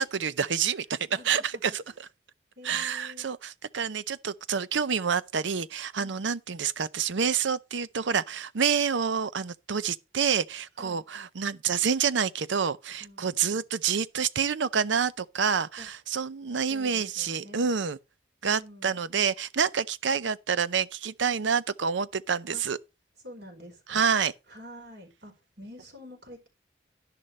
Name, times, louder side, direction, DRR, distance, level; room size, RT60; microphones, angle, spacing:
voice 1, 0.0-2.1 2.6-18.0 18.4-22.8 23.9-24.3, right 6 dB, 75° right, 0.6 m, -28 dB
voice 2, 1.1-1.8 2.6-3.3 6.0-6.2 10.8-11.0 13.0-13.6 15.8-15.9 16.5-17.7 18.5-19.0 22.5-22.6 23.2-24.0 24.5-26.5, equal, 55° right, 4.4 m, -48 dB
11.5 x 10.5 x 3.2 m
head